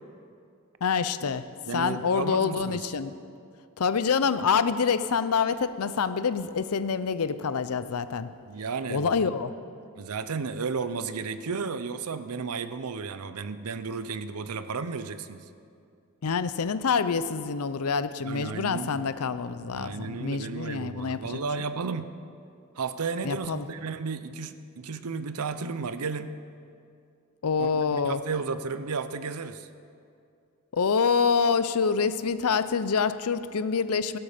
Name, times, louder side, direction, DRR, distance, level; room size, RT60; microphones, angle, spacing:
voice 1, 0.8-1.4 1.7-3.2 3.8-8.3 8.9-9.5 16.2-21.4 23.2-23.7 27.4-28.2 30.7-34.2, left 5 dB, 80° left, 13 dB, 0.6 m, -26 dB
voice 2, 1.7-2.8 8.5-9.3 10.0-15.5 18.2-19.1 19.7-22.1 22.8-26.4 27.6-29.7, right 4 dB, 85° right, 12 dB, 0.7 m, -33 dB
16.5 x 12.5 x 5.1 m, 2.4 s
head